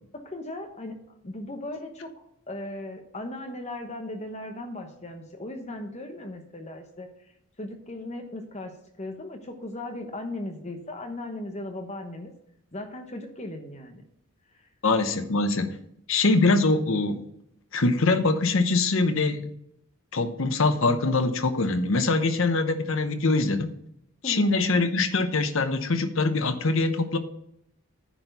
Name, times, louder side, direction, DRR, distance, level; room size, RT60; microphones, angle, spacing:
voice 1, 0.1-2.1 2.5-7.1 7.6-12.3 12.7-14.0 24.2-24.5, left 1 dB, 30° left, 5 dB, 1.1 m, -37 dB
voice 2, 14.8-15.7 16.1-17.3 17.7-19.5 20.1-23.7 24.2-27.2, left 3 dB, 60° left, 9 dB, 0.8 m, -23 dB
10.0 x 4.5 x 6.8 m, 0.74 s
head